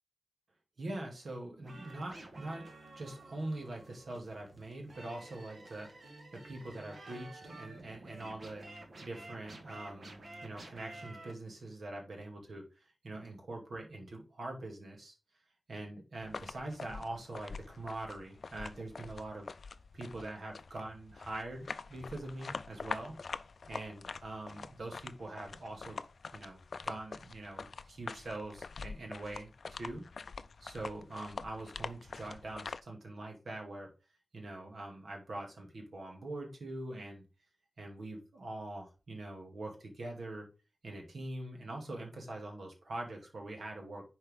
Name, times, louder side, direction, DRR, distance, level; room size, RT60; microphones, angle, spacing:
voice 1, 0.8-2.6 3.0-8.7 9.0-15.2 15.7-19.5 19.9-23.1 23.7-26.0 26.3-30.0 30.6-33.9 34.3-37.2 37.8-40.4 40.8-44.0, right 2 dB, 70° right, 1 dB, 2.3 m, -43 dB
sound 1, 1.6-11.3, right 2 dB, 50° right, 1.5 m, -51 dB
sound 2, 16.2-32.8, left 4 dB, 60° left, 0.4 m, -45 dB
10.5 x 4.3 x 3.7 m, 0.32 s
wide cardioid pair, 135°, 0 cm